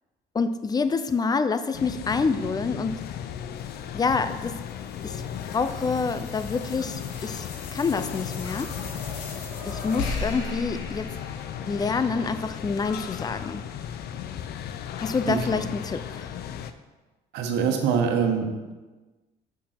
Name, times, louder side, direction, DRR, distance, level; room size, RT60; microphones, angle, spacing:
voice 1, 0.3-3.0 3.9-4.6 5.0-5.2 5.5-8.7 9.7-11.1 11.6-13.6 15.0-16.3, left 4 dB, 25° left, 11 dB, 0.5 m, -27 dB
sound 1, 1.7-16.7, left 9 dB, 70° left, 0.6 m, -36 dB
sound 2, 3.6-12.2, left 3 dB, 90° left, 1.5 m, -38 dB
voice 2, 15.3-15.6 17.3-18.7, right 6 dB, 90° right, 4 dB, 1.2 m, -25 dB
6.3 x 6.1 x 5.9 m, 1.2 s
cardioid pair, 110°, 17 cm